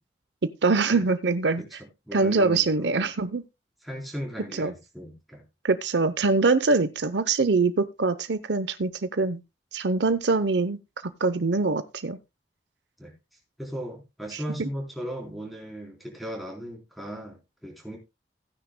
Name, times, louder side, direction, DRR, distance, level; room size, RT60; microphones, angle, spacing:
voice 1, 0.4-1.6 2.1-3.4 4.5-4.7 5.6-9.4 9.7-12.2 14.6-14.7, right 3 dB, 80° right, 13 dB, 0.8 m, -24 dB
voice 2, 1.6-3.1 3.8-5.4 10.0-10.1 13.0-13.1 13.6-18.0, equal, ahead, -1 dB, 3.7 m, -37 dB
16.0 x 9.7 x 2.2 m, 0.25 s
head